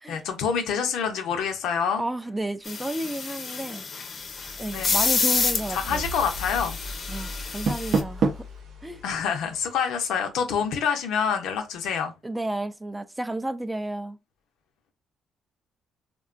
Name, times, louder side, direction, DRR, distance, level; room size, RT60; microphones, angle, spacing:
voice 1, 0.1-2.0 4.7-5.0 5.7-6.8 9.0-12.1, left 7 dB, 85° left, 0.6 m, -27 dB
voice 2, 2.0-3.8 4.6-6.1 7.1-8.4 8.8-9.0 12.2-14.2, right 1 dB, 10° right, 0.3 m, -32 dB
sound 1, 2.6-8.0, left 4 dB, 45° left, 0.6 m, -29 dB
sound 2, 4.2-10.3, left 1 dB, 85° right, 1.0 m, -40 dB
Door, 7.4-8.6, right 4 dB, 70° right, 0.6 m, -26 dB
3.6 x 2.2 x 2.4 m
cardioid pair, 90°, 0 cm